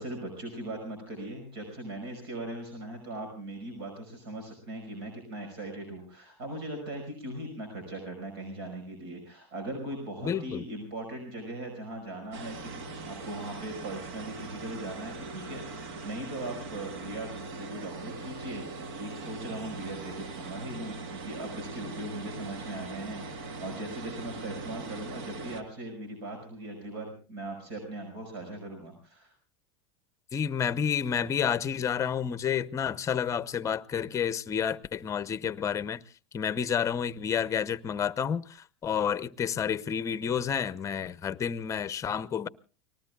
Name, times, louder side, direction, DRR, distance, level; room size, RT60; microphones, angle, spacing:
voice 1, 0.0-12.7 13.1-29.3, right 1 dB, 90° right, 5.6 m, -39 dB
voice 2, 10.2-10.6 30.3-36.0 36.3-42.5, left 7 dB, 25° left, 0.7 m, -30 dB
sound 1, 12.3-25.6, right 3 dB, 70° right, 1.6 m, -41 dB
30.0 x 19.5 x 2.3 m
supercardioid pair, 125°, 13 cm